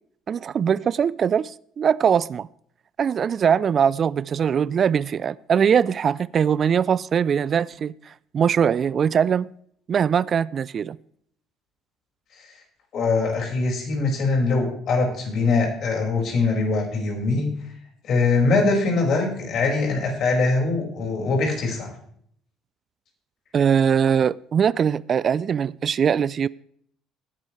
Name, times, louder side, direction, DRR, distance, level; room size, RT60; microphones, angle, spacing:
voice 1, 0.3-2.5 3.0-9.5 9.9-11.0 23.5-26.5, right 7 dB, 45° right, 0.4 m, -21 dB
voice 2, 12.9-17.5 18.0-21.9, left 3 dB, 55° left, 5.3 m, -22 dB
17.5 x 10.5 x 3.2 m
hypercardioid pair, 55°, 0 cm